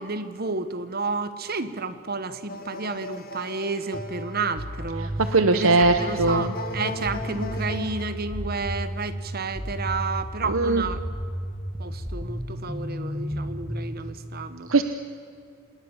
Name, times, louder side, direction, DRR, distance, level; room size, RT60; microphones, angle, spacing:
voice 1, 0.0-5.1 5.5-11.0 11.8-14.7, right 4 dB, 45° right, 12 dB, 1.3 m, -31 dB
sound 1, 2.5-8.0, left 2 dB, 45° left, 2.0 m, -37 dB
sound 2, 3.9-13.9, equal, 10° right, 2.4 m, -33 dB
voice 2, 5.2-6.5 10.5-10.8 14.7-14.8, right 3 dB, 70° right, 8 dB, 1.0 m, -20 dB
28.5 x 19.5 x 7.2 m, 2.4 s
head